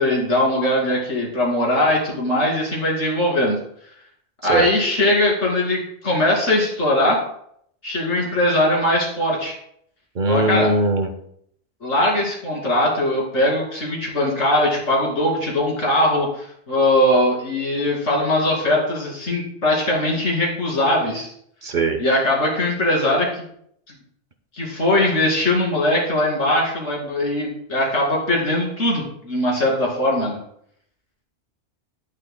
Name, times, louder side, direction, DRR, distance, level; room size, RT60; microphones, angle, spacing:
voice 1, 0.0-3.6 4.4-7.2 7.8-9.5 10.3-10.7 11.8-21.3 22.0-23.4 24.5-30.4, left 1 dB, 85° left, -3 dB, 2.9 m, -20 dB
voice 2, 10.1-11.1 21.6-22.0, right 2 dB, 50° right, 6 dB, 0.9 m, -20 dB
11.0 x 8.6 x 2.2 m, 0.69 s
omnidirectional pair, 1.2 m